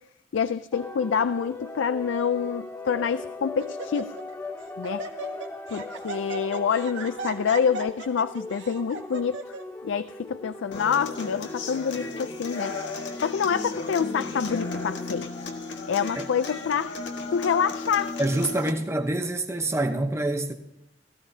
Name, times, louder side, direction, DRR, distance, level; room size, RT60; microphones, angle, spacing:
voice 1, 0.3-4.2 4.8-5.0 5.7-9.4 9.8-12.8 13.2-15.3 15.9-17.0 17.3-18.2, left 6 dB, 85° left, 0.4 m, -27 dB
sound 1, 0.7-15.1, left 2 dB, 10° left, 0.9 m, -40 dB
Laughter, 1.3-1.7 2.4-2.5 3.0-3.3 3.6-4.3 4.6-9.6, right 4 dB, 75° right, 1.7 m, -38 dB
Human voice / Acoustic guitar, 10.7-18.7, left 3 dB, 70° left, 1.5 m, -35 dB
voice 2, 18.2-20.5, right 2 dB, 15° right, 0.8 m, -26 dB
17.5 x 14.5 x 2.7 m
head